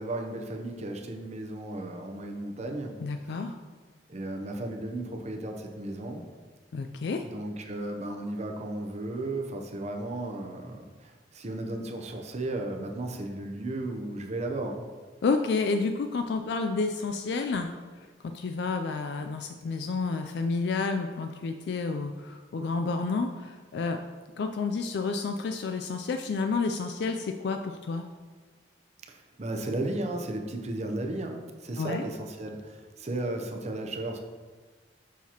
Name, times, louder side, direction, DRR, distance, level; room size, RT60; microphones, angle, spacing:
voice 1, 0.0-3.0 4.1-6.3 7.2-14.8 29.1-34.2, right 2 dB, 35° right, 3 dB, 0.7 m, -34 dB
voice 2, 3.0-3.6 6.7-7.2 15.2-24.0 24.4-28.0 31.8-32.0, left 4 dB, 60° left, 6 dB, 0.3 m, -30 dB
7.2 x 5.7 x 2.9 m, 1.4 s
head